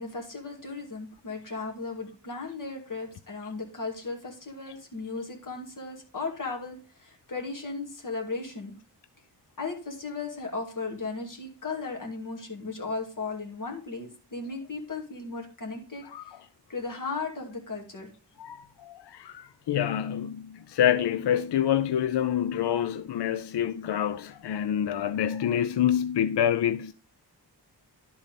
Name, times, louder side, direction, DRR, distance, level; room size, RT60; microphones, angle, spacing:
voice 1, 0.0-8.7 9.6-16.3 16.7-18.1, left 3 dB, 45° left, 2.6 m, -36 dB
voice 2, 16.0-16.4 18.4-26.9, left 10 dB, 70° left, 0.5 m, -27 dB
11.5 x 4.3 x 5.2 m
wide cardioid pair, 125°, 42 cm